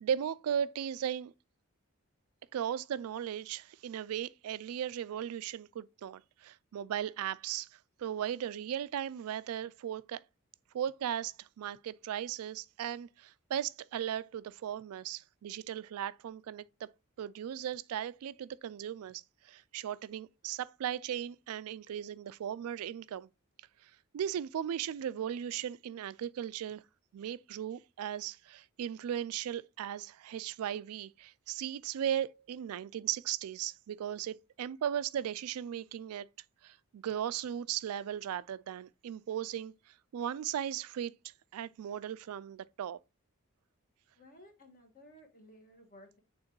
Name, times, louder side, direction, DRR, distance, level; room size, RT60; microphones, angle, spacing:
voice 1, 0.0-1.3 2.5-10.2 10.7-16.9 17.2-23.3 23.8-26.8 27.1-36.3 36.6-39.7 40.1-41.1 41.5-43.0, right 9 dB, 85° right, 0.3 m, -37 dB
voice 2, 44.2-46.2, left 1 dB, 40° left, 1.4 m, -56 dB
8.7 x 3.7 x 3.0 m
head